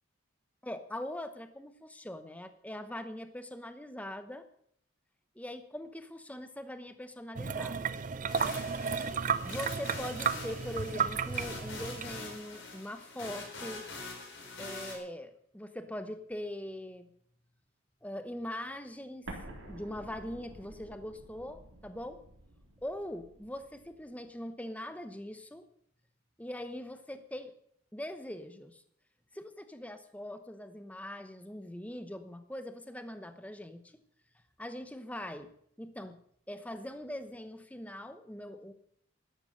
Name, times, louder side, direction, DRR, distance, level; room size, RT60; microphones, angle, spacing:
voice 1, 0.6-4.5 5.4-7.9 9.4-13.9 14.6-17.1 18.0-22.2 22.8-25.7 26.4-27.5 27.9-28.8 29.3-34.0 34.6-35.5 35.8-36.2 36.5-38.7, left 1 dB, 5° left, 10 dB, 0.9 m, -42 dB
sound 1, 7.4-12.4, right 6 dB, 35° right, 0.5 m, -33 dB
sound 2, 8.3-15.0, left 3 dB, 60° left, 4.6 m, -44 dB
Explosion, 19.3-24.0, right 1 dB, 70° right, 3.8 m, -50 dB
12.5 x 11.0 x 6.6 m, 0.67 s
head